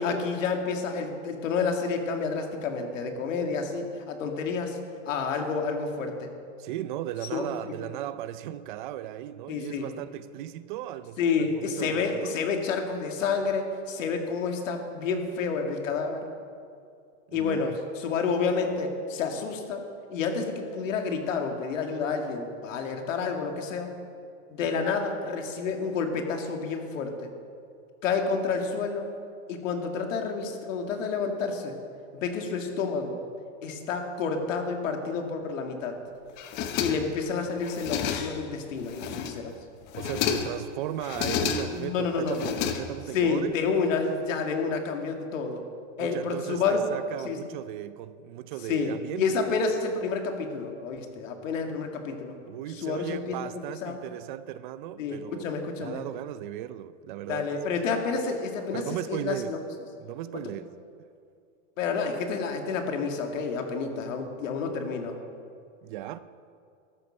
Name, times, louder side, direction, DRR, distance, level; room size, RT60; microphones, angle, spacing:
voice 1, 0.0-4.8 5.1-6.3 7.3-7.7 9.5-9.9 11.2-16.3 17.3-19.8 20.1-23.9 24.5-27.3 28.0-29.1 29.5-31.8 32.1-33.2 33.6-36.0 36.8-39.5 41.7-42.4 43.1-45.6 46.0-46.8 47.2-47.4 48.7-52.4 52.7-53.4 53.8-54.0 55.0-56.0 57.3-59.6 61.8-65.2, left 5 dB, 90° left, 4 dB, 2.2 m, -29 dB
voice 2, 6.6-12.4 17.3-17.8 39.9-43.6 46.0-49.5 52.5-55.5 55.8-57.4 58.7-59.5 60.0-60.7 65.8-66.2, right 13 dB, 40° right, 14 dB, 0.4 m, -36 dB
sound 1, 36.4-37.3 37.6-38.5 38.9-39.5 39.9-40.6 41.0-41.9 42.3-43.2, left 8 dB, 30° left, 0.8 m, -31 dB
13.5 x 11.0 x 6.4 m, 2.4 s
supercardioid pair, 165°, 38 cm